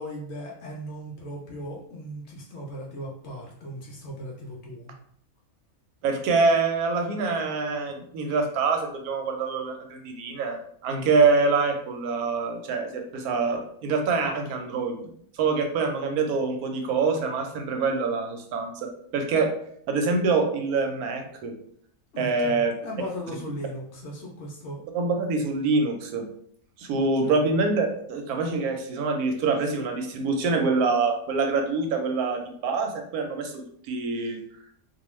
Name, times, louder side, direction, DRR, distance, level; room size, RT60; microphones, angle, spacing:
voice 1, 0.0-4.9 22.1-24.8 26.9-27.4, equal, 65° left, -2 dB, 0.7 m, -37 dB
voice 2, 6.0-19.5 19.9-21.5 22.2-22.7 24.9-26.2 26.8-34.4, right 4 dB, 90° right, 4 dB, 1.1 m, -25 dB
2.4 x 2.3 x 3.0 m, 0.64 s
omnidirectional pair, 1.5 m